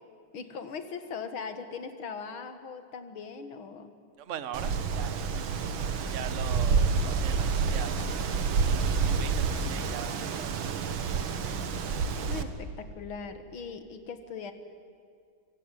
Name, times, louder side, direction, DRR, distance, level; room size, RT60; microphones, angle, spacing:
voice 1, 0.3-3.9 12.3-14.5, left 5 dB, 90° left, 9 dB, 2.5 m, -40 dB
voice 2, 4.2-5.2 6.0-8.1 8.6-11.6, right 8 dB, 45° right, 12 dB, 1.2 m, -41 dB
Wind, 4.5-12.4, right 5 dB, 80° right, 2.1 m, -28 dB
24.5 x 24.0 x 9.3 m, 2.1 s
omnidirectional pair, 2.2 m